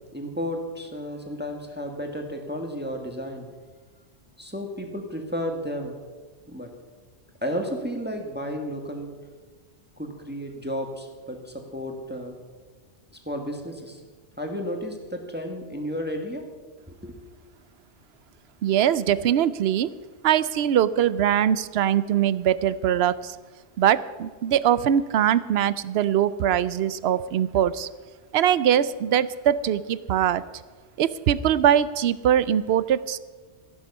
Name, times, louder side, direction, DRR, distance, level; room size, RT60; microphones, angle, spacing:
voice 1, 0.1-3.5 4.4-5.9 6.5-6.7 7.4-9.1 10.0-12.4 13.2-14.0 14.4-16.4 16.9-17.2, equal, 10° right, 3 dB, 1.5 m, -32 dB
voice 2, 18.6-19.9 20.2-23.3 23.8-27.9 28.3-30.4 31.0-33.2, right 10 dB, 65° right, 16 dB, 0.8 m, -22 dB
14.5 x 11.0 x 5.5 m, 1.4 s
omnidirectional pair, 1.2 m